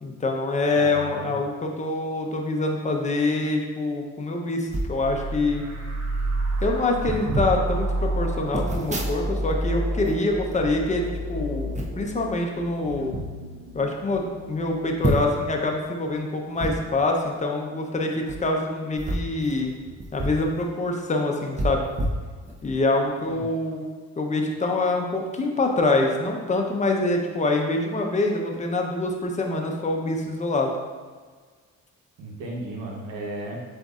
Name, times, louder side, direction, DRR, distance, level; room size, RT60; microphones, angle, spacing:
voice 1, 0.0-5.6 6.6-13.2 13.7-19.7 20.1-21.9 22.6-23.8 24.2-30.7, left 2 dB, 25° left, 1 dB, 0.7 m, -25 dB
voice 2, 0.7-1.4 23.3-23.4 32.2-33.6, right 2 dB, 85° right, -2 dB, 1.1 m, -34 dB
sound 1, 4.7-5.0 5.8-5.9 6.1-6.4 7.0-7.5 8.5-9.6 9.9-11.2 11.7-12.1 12.8-13.2 13.8-13.9 14.1-14.2 15.0-15.5 16.6-16.7 18.2-18.4 18.9-20.4 20.8-20.9 21.5-22.8 23.2-23.4, right 1 dB, 25° right, 0.7 m, -29 dB
sound 2, 5.0-16.3, right 1 dB, 50° right, 1.0 m, -31 dB
7.8 x 2.6 x 2.4 m, 1.5 s
cardioid pair, 90°, 30 cm